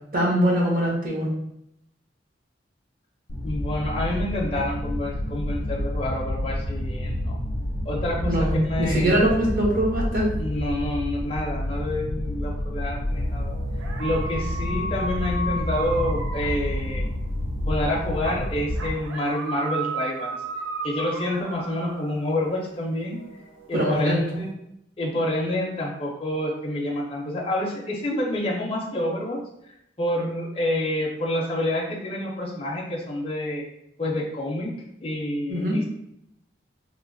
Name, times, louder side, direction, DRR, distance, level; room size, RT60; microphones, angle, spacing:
voice 1, 0.1-1.3 8.2-10.3 23.7-24.2 35.5-35.8, equal, 50° right, -4 dB, 0.8 m, -22 dB
sound 1, 3.3-18.9, left 1 dB, 80° left, 0.5 m, -29 dB
voice 2, 3.4-7.4 7.9-8.3 8.6-9.1 10.4-13.5 14.0-17.0 17.7-20.3 20.8-23.2 23.7-24.5 25.0-33.6 34.0-34.7 35.0-35.8, left 1 dB, 30° left, -2 dB, 0.4 m, -28 dB
sound 2, 13.1-17.2 18.2-22.4 23.0-24.5, right 3 dB, 85° right, 0.5 m, -35 dB
3.0 x 2.0 x 2.5 m, 0.78 s
head